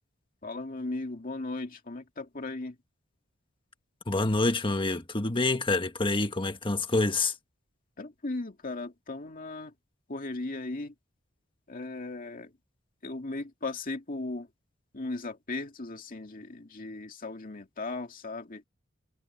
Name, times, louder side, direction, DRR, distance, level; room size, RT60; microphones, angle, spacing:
voice 1, 0.4-2.8 8.0-9.7 10.1-10.9 11.7-12.5 13.0-14.5 14.9-18.6, left 2 dB, 45° left, 2.2 m, -37 dB
voice 2, 4.1-7.3, left 2 dB, 25° left, 1.5 m, -27 dB
head